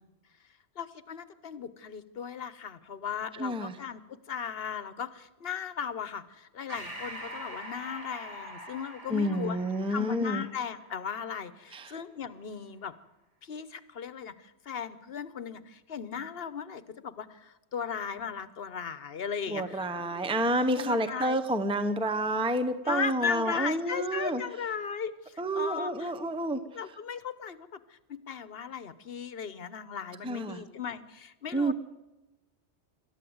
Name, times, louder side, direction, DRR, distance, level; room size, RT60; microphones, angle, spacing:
voice 1, 0.8-4.0 4.3-9.6 9.9-12.9 13.4-19.8 20.1-20.2 20.8-21.4 22.9-26.1 26.7-31.7, left 7 dB, 55° left, 14 dB, 1.2 m, -37 dB
voice 2, 3.4-3.7 9.1-10.4 11.7-11.9 19.5-24.4 25.4-26.8 30.2-30.6 31.5-31.7, right 1 dB, 5° right, 8 dB, 0.9 m, -29 dB
Breathing, 6.7-11.6, right 1 dB, 80° right, 5.4 m, -44 dB
27.0 x 13.0 x 8.0 m, 1.1 s
omnidirectional pair, 1.2 m